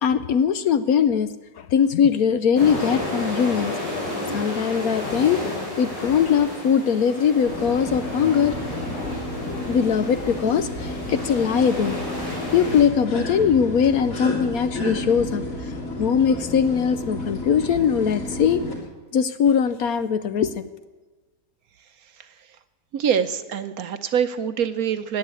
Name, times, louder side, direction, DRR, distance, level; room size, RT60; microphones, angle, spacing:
voice 1, 0.0-3.8 4.3-8.5 9.7-12.0 12.5-15.4 16.0-18.6 19.1-20.7, left 7 dB, 65° left, 12 dB, 1.0 m, -21 dB
sound 1, 2.5-12.8, left 1 dB, 90° left, 6.8 m, -32 dB
sound 2, 7.4-18.7, left 1 dB, 50° left, 3.0 m, -31 dB
voice 2, 22.2-22.5 22.9-25.2, right 8 dB, 65° right, 12 dB, 1.0 m, -25 dB
16.5 x 10.0 x 8.3 m, 1.2 s
omnidirectional pair, 1.9 m